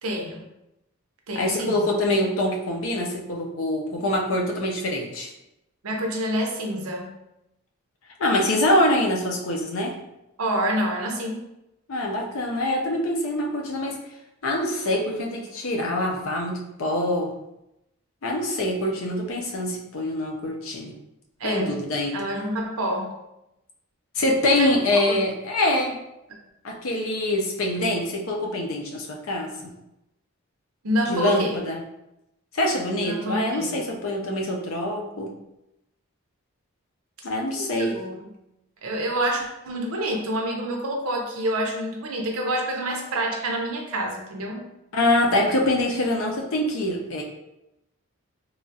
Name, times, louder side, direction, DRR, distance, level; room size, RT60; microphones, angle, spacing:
voice 1, 0.0-0.5 1.3-1.8 5.8-7.1 10.4-11.4 21.4-21.8 22.1-23.2 24.5-25.2 30.8-31.6 33.0-33.7 37.5-38.2 38.8-44.6, right 1 dB, 80° right, 1 dB, 0.6 m, -27 dB
voice 2, 1.3-5.3 8.2-10.0 11.9-14.0 14.4-17.3 18.2-21.0 21.4-22.3 24.1-26.0 26.6-29.7 31.0-31.8 32.5-35.3 37.2-38.0 44.9-47.2, left 1 dB, 70° left, 0 dB, 0.5 m, -25 dB
3.0 x 2.3 x 2.6 m, 0.89 s
head